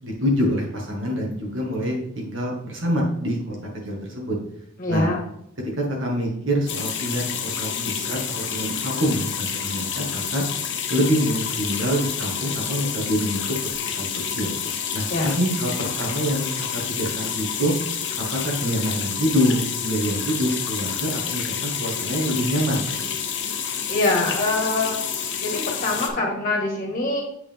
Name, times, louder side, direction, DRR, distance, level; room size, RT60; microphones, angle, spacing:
voice 1, 0.0-3.6 3.8-4.4 4.9-5.1 5.6-10.4 10.9-13.4 14.0-14.1 14.3-14.6 14.9-17.7 18.2-23.0, equal, 70° right, -2 dB, 2.1 m, -25 dB
voice 2, 4.8-5.2 15.1-15.3 23.9-25.0 25.4-27.2, left 2 dB, 45° left, -2 dB, 1.7 m, -24 dB
sound 1, 6.7-26.1, left 7 dB, 60° left, 0.9 m, -29 dB
8.0 x 4.1 x 3.6 m, 0.73 s
head